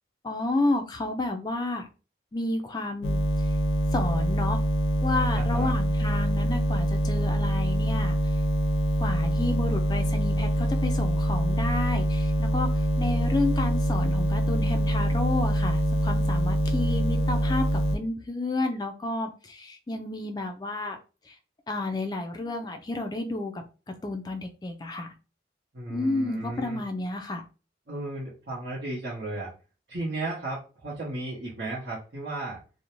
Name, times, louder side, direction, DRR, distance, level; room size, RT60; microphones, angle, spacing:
voice 1, 0.2-1.9 2.3-3.2 3.9-4.6 5.0-8.1 9.0-21.0 21.3-21.4 21.7-23.6 24.0-25.1 25.9-27.4, left 2 dB, 20° left, 6 dB, 0.3 m, -31 dB
sound 1, 3.0-18.0, equal, 80° left, 0.5 m, -25 dB
voice 2, 5.3-5.7 25.7-26.8 27.9-29.5 29.9-32.6, right 2 dB, 70° right, -7 dB, 0.7 m, -34 dB
2.5 x 2.0 x 2.9 m, 0.34 s
head